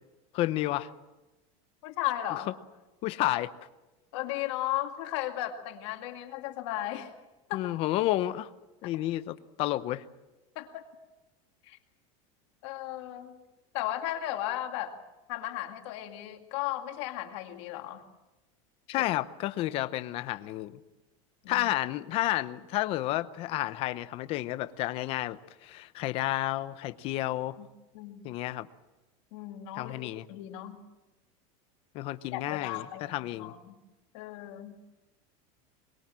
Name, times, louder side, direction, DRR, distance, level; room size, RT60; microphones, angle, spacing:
voice 1, 0.3-0.9 2.3-2.4 3.0-3.5 7.5-8.5 8.8-10.0 18.9-20.7 21.5-27.6 28.2-28.7 29.8-30.2 31.9-33.5, left 15 dB, 30° left, 13 dB, 0.8 m, -31 dB
voice 2, 1.8-2.5 4.1-7.1 7.5-7.7 10.6-10.8 11.7-11.8 12.6-13.4 13.7-14.9 15.3-18.0 19.0-19.1 21.4-21.6 27.6-27.7 27.9-28.3 29.3-29.9 30.3-30.8 32.3-33.8 34.1-34.8, left 14 dB, 55° left, 4 dB, 2.2 m, -35 dB
23.0 x 21.5 x 7.6 m, 1.1 s
supercardioid pair, 180°, 18 cm